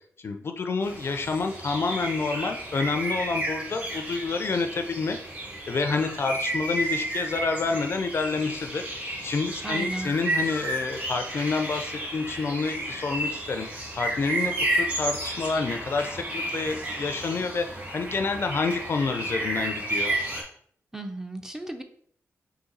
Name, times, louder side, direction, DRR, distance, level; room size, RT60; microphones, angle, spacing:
voice 1, 0.2-5.2 5.7-13.7 14.0-20.1, left 4 dB, 50° left, 6 dB, 0.4 m, -28 dB
sound 1, 0.8-20.4, right 1 dB, 35° right, 1.5 m, -32 dB
voice 2, 9.6-10.1 20.9-21.8, right 1 dB, 10° right, 5 dB, 0.4 m, -35 dB
4.0 x 2.7 x 3.8 m, 0.62 s
wide cardioid pair, 105°, 5 cm